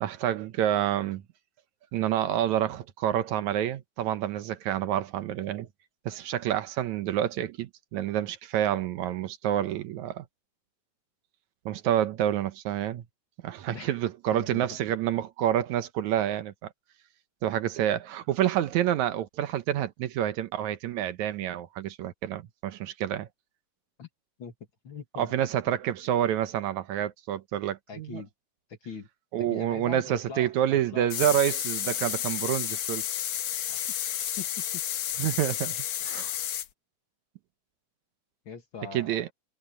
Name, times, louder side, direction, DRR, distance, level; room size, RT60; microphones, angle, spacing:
voice 1, 0.0-1.2 1.9-5.7 6.1-10.3 11.7-13.0 13.4-16.7 17.4-23.3 25.2-28.2 29.3-33.0 35.2-35.7 36.0-36.4 38.9-39.3, right 11 dB, 75° right, 2.2 m, -28 dB
voice 2, 14.3-14.7 24.0-24.1 24.4-24.5 24.8-25.4 25.7-25.8 27.9-28.3 28.7-29.1 29.4-31.4 33.7-33.8 34.4-34.8 38.5-39.2, left 5 dB, 45° left, 2.4 m, -42 dB
sound 1, 31.1-36.7, left 11 dB, 65° left, 2.3 m, -31 dB
omnidirectional pair, 3.5 m